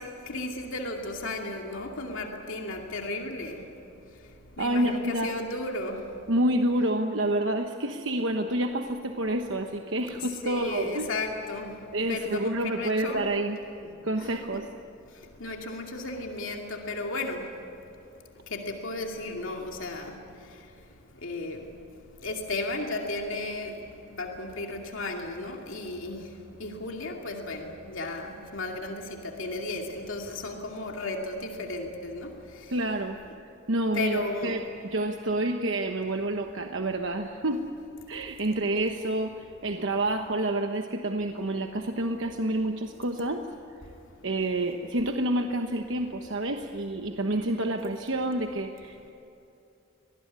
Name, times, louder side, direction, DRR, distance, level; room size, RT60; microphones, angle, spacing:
voice 1, 0.0-6.3 10.1-13.3 14.2-14.4 15.1-17.7 18.3-32.8 33.9-34.6, left 2 dB, 65° left, 1 dB, 2.5 m, -35 dB
voice 2, 4.6-5.3 6.3-11.1 11.9-13.6 14.0-14.7 32.7-33.2 33.7-37.6 38.1-43.4 44.2-49.1, right 1 dB, 60° right, 4 dB, 1.1 m, -28 dB
24.5 x 19.0 x 9.7 m, 2.8 s
head